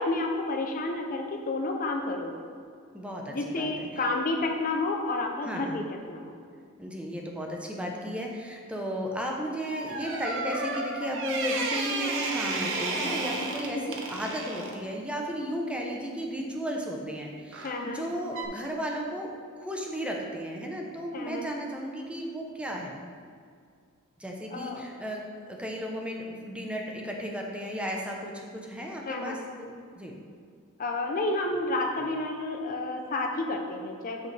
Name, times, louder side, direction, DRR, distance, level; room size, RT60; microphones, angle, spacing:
voice 1, 0.0-2.3 3.3-5.8 6.1-6.3 17.6-18.0 21.1-21.5 24.5-24.8 29.1-29.4 30.8-34.2, left 2 dB, 40° left, 3 dB, 0.5 m, -30 dB
voice 2, 2.9-3.9 5.4-5.8 6.8-22.9 24.2-30.1, equal, 5° right, 0 dB, 0.7 m, -34 dB
sound 1, 9.6-14.8 17.5-17.8 18.3-18.5, right 3 dB, 60° right, 0.9 m, -32 dB
7.9 x 6.5 x 3.3 m, 2.2 s
head